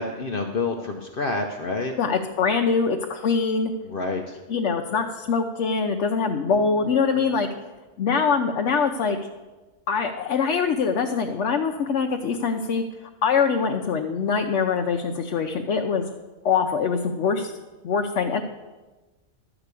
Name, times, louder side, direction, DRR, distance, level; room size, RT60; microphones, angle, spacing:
voice 1, 0.0-1.9 3.8-4.4 6.8-6.9 7.2-7.3, left 3 dB, 55° left, 2 dB, 0.9 m, -28 dB
voice 2, 2.0-3.7 4.5-7.5 8.0-9.2 9.9-12.8 13.2-16.0 16.4-17.5 17.8-18.4, left 5 dB, 80° left, 3 dB, 1.0 m, -23 dB
12.0 x 4.9 x 8.2 m, 1.2 s
omnidirectional pair, 1.2 m